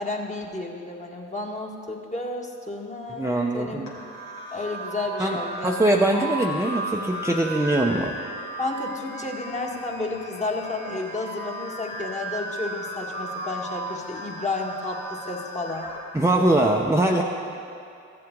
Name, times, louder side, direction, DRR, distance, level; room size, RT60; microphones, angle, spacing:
voice 1, 0.0-3.8 4.5-5.8 8.6-15.9, left 2 dB, 20° left, 0 dB, 1.7 m, -31 dB
voice 2, 3.1-3.9 5.2-5.4 5.6-8.1 16.1-17.2, right 1 dB, 10° right, -1 dB, 0.8 m, -22 dB
sound 1, 3.9-16.0, right 1 dB, 70° left, 2.0 m, -35 dB
14.5 x 7.6 x 3.9 m, 2.5 s
hypercardioid pair, 40°, 34 cm